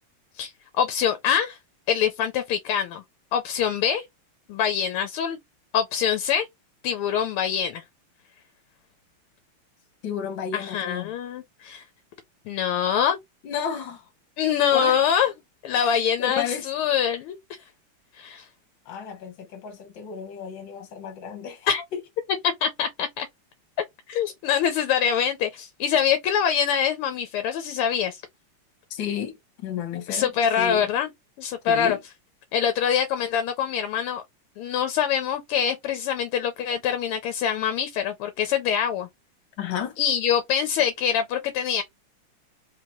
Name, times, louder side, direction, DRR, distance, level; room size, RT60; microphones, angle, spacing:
voice 1, 0.8-1.6 1.9-3.0 3.3-4.0 4.5-5.4 5.7-6.5 6.8-7.8 10.5-11.8 12.5-13.2 14.4-15.3 15.6-17.4 18.2-18.5 21.7-21.8 22.6-23.3 24.1-28.2 30.1-31.1 31.4-32.0 32.5-34.2 34.6-39.1 40.0-41.8, left 8 dB, 80° left, 1.5 m, -24 dB
voice 2, 10.0-11.1 13.4-14.0 14.7-15.0 15.7-16.7 18.9-21.7 28.9-30.9 31.7-32.0 39.6-40.0, left 8 dB, 65° left, 1.7 m, -32 dB
4.0 x 2.8 x 2.9 m
omnidirectional pair, 2.4 m